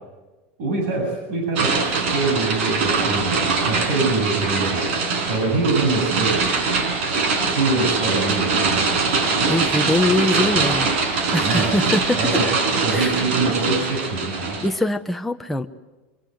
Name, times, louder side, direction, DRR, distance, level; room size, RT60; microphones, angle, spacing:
voice 1, 0.6-1.8 2.1-5.0 5.2-6.6 7.5-9.1 11.4-11.8 12.1-14.6, right 3 dB, 60° right, 2 dB, 7.6 m, -24 dB
sound 1, 1.6-14.7, right 4 dB, 75° right, 5.4 m, -22 dB
voice 2, 9.4-10.9 11.3-12.2 12.9-13.2 14.6-15.7, left 1 dB, 5° left, 5 dB, 0.8 m, -22 dB
25.5 x 24.5 x 8.0 m, 1.1 s
supercardioid pair, 170°, 6 cm